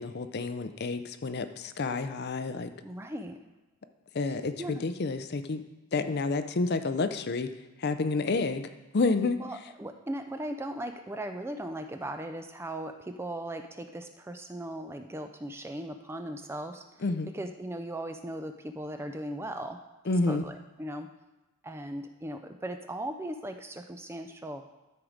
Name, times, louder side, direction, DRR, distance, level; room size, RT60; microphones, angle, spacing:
voice 1, 0.0-2.7 4.1-5.6 5.9-7.5 7.8-9.4 17.0-17.3 20.1-20.4, left 3 dB, 45° left, 10 dB, 0.5 m, -29 dB
voice 2, 2.8-3.4 4.3-4.9 9.4-16.8 17.3-19.8 20.3-21.1 21.6-24.6, right 1 dB, 10° right, 6 dB, 0.4 m, -38 dB
12.5 x 4.7 x 5.0 m, 1.0 s
head